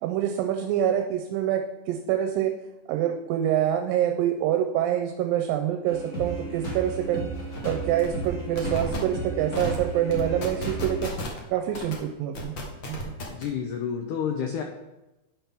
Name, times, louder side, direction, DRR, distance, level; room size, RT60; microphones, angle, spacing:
voice 1, 0.0-1.6 1.9-2.5 2.9-7.3 7.6-11.1 11.5-12.6 12.9-13.1, right 10 dB, 80° right, 5 dB, 2.2 m, -26 dB
sound 1, 5.9-11.1, right 2 dB, 35° left, 1.6 m, -34 dB
sound 2, 6.9-7.0 7.3-7.6 8.0-8.3 8.5-9.0 9.5-9.8 10.1-11.4 11.7-11.9 12.3-13.4, left 1 dB, 60° left, 1.2 m, -33 dB
voice 2, 13.3-14.6, left 7 dB, 80° left, 4 dB, 1.8 m, -29 dB
10.0 x 5.8 x 3.5 m, 1.0 s
omnidirectional pair, 4.2 m